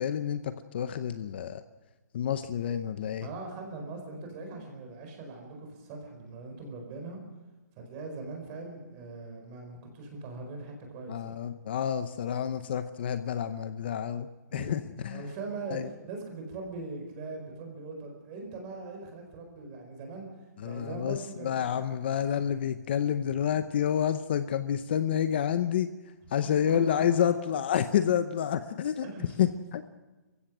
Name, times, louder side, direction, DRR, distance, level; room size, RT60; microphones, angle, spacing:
voice 1, 0.0-1.6 2.1-3.3 11.1-15.2 15.7-15.8 20.6-25.9 26.3-29.1 29.4-29.8, left 9 dB, 35° left, 11 dB, 0.8 m, -29 dB
voice 2, 3.2-7.2 7.8-11.4 14.5-20.3 20.6-21.7 26.3-27.0 29.0-29.4, right 3 dB, 20° right, 3 dB, 4.5 m, -41 dB
28.0 x 15.5 x 6.2 m, 1.2 s
hypercardioid pair, 170°, 9 cm